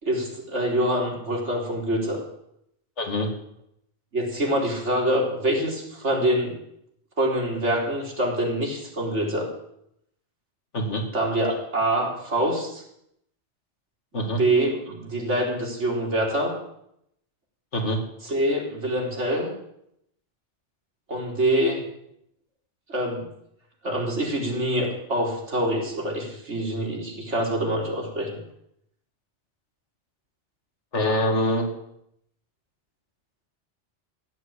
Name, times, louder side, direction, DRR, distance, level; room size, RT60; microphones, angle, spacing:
voice 1, 0.0-2.2 4.1-6.6 7.2-9.5 11.1-12.8 14.4-16.5 18.2-19.5 21.1-21.8 22.9-23.3 23.8-28.4, right 1 dB, 90° right, -1 dB, 4.2 m, -25 dB
voice 2, 3.0-3.3 10.7-11.0 14.1-14.4 17.7-18.0 30.9-31.7, left 1 dB, 85° left, 4 dB, 2.7 m, -24 dB
15.0 x 9.5 x 8.5 m, 0.76 s
omnidirectional pair, 1.2 m